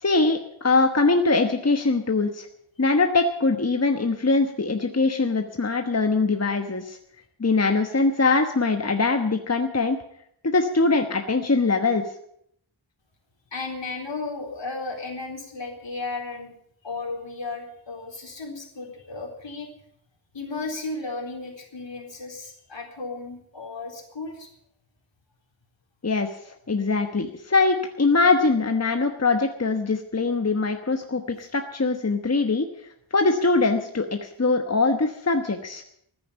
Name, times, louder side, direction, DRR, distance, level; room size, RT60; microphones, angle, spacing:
voice 1, 0.0-2.5 2.8-7.0 7.4-10.0 10.4-12.0 26.0-26.3 26.7-32.7 33.1-35.8, left 3 dB, 35° left, 5 dB, 1.2 m, -22 dB
voice 2, 13.5-16.6 16.8-19.7 20.3-24.5, left 3 dB, 65° left, 1 dB, 3.9 m, -34 dB
14.5 x 10.0 x 8.2 m, 0.71 s
wide cardioid pair, 75°, 47 cm